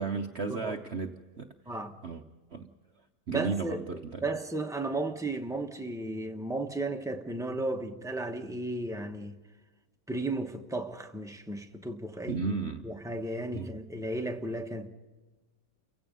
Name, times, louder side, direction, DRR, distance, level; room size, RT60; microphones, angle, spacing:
voice 1, 0.0-1.5 2.0-2.2 2.5-2.7 3.3-4.0 12.3-12.8 13.5-13.7, right 4 dB, 50° right, 0.8 m, -33 dB
voice 2, 1.7-2.0 3.3-9.4 10.1-12.4 12.8-14.9, right 2 dB, 5° right, 0.7 m, -34 dB
29.5 x 16.5 x 5.3 m
omnidirectional pair, 2.1 m